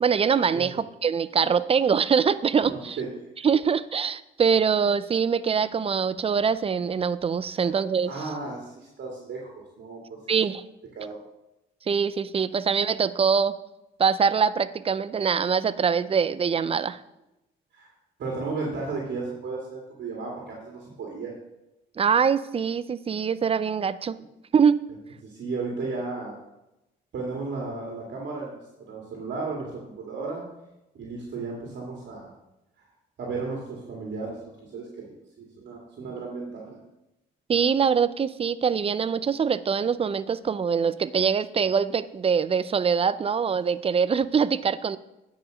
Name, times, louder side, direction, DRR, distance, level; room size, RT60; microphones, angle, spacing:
voice 1, 0.0-3.0 3.4-8.1 10.3-10.6 11.9-13.5 14.0-17.0 22.0-24.2 24.5-24.8 37.5-45.0, right 6 dB, 30° right, 15 dB, 0.5 m, -23 dB
voice 2, 2.6-3.3 7.6-7.8 8.0-10.2 11.0-11.2 17.7-17.9 18.2-21.3 25.2-26.3 27.1-28.6 28.9-30.4 30.9-32.3 33.2-36.8, right 3 dB, 60° right, -2 dB, 2.2 m, -34 dB
9.5 x 5.0 x 6.3 m, 0.92 s
cardioid pair, 90°, 20 cm